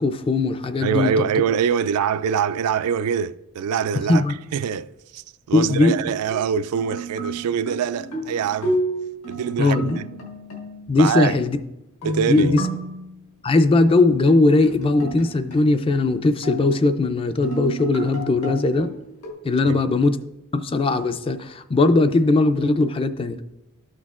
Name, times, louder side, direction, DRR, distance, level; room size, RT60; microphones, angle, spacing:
voice 1, 0.0-1.2 4.1-4.3 5.5-6.0 9.6-10.0 10.9-11.6 12.3-12.6 13.4-18.9 19.4-20.2 20.5-23.4, left 2 dB, 25° left, 0.3 m, -19 dB
voice 2, 0.8-4.2 4.5-8.8 9.3-10.0 11.0-11.4 12.0-12.5 19.7-19.8, right 7 dB, 85° right, 0.3 m, -24 dB
sound 1, 6.3-11.1 12.0-13.2 14.3-17.0 17.4-19.3, right 1 dB, 75° left, 1.5 m, -31 dB
12.0 x 6.2 x 2.4 m
head